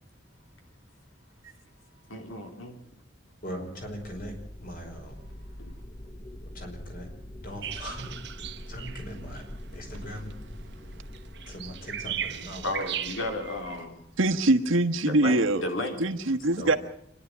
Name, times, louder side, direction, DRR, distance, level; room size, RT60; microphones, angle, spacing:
voice 1, 2.1-2.7 5.6-5.7 12.6-13.9 15.1-16.0, left 1 dB, 85° left, 4 dB, 3.5 m, -33 dB
voice 2, 3.4-5.2 6.5-7.1 7.4-8.2 8.7-9.4 9.7-10.3 11.5-12.7 16.6-16.8, equal, 45° left, 3 dB, 5.3 m, -40 dB
sound 1, 3.8-14.4, left 1 dB, 25° left, 1.1 m, -44 dB
sound 2, 7.6-13.9, right 9 dB, 55° right, 1.1 m, -38 dB
voice 3, 14.2-15.6 16.0-16.8, right 2 dB, 85° right, 6 dB, 1.4 m, -23 dB
26.5 x 11.5 x 9.3 m, 0.72 s
head